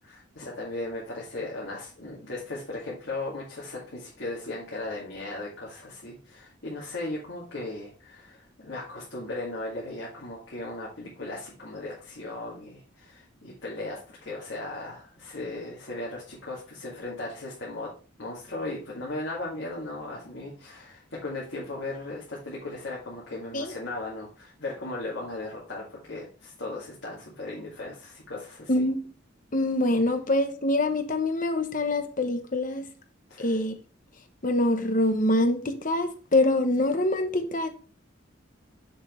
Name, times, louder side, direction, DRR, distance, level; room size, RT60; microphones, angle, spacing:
voice 1, 0.1-17.9 18.2-28.8 33.3-33.6, left 2 dB, 70° left, 2.1 m, -37 dB
voice 2, 28.7-29.0 29.5-32.9 33.4-33.8 34.4-37.7, left 1 dB, 45° left, 0.9 m, -25 dB
6.5 x 6.0 x 3.1 m
head